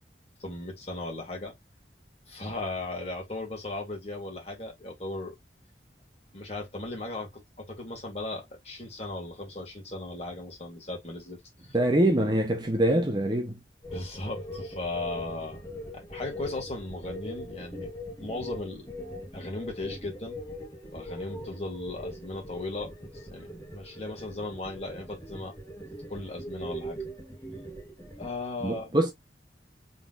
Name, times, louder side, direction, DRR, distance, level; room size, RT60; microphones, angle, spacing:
voice 1, 0.4-1.5 2.3-5.3 6.3-11.8 13.9-15.6 15.9-17.9 18.2-18.9 19.3-20.4 20.9-25.5 26.1-27.0 28.2-28.9, left 2 dB, 35° left, 2.0 m, -37 dB
voice 2, 11.7-13.6 28.6-29.1, right 1 dB, 25° right, 0.8 m, -24 dB
sound 1, 13.8-28.3, equal, 15° left, 1.9 m, -41 dB
4.0 x 3.8 x 2.5 m
head